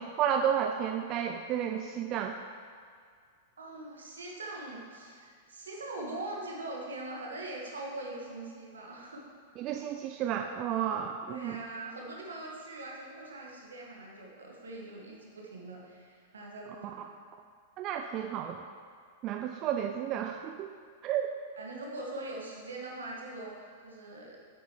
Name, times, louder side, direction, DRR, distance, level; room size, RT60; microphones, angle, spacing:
voice 1, 0.0-2.4 9.6-11.6 17.8-18.6 19.2-20.7 21.0-21.3, right 9 dB, 40° right, 4 dB, 0.4 m, -32 dB
voice 2, 3.6-9.3 11.3-17.0 21.6-24.4, right 2 dB, 80° right, -2 dB, 1.7 m, -42 dB
8.9 x 7.9 x 3.2 m, 2.1 s
figure-of-eight pair, 100°, 0 cm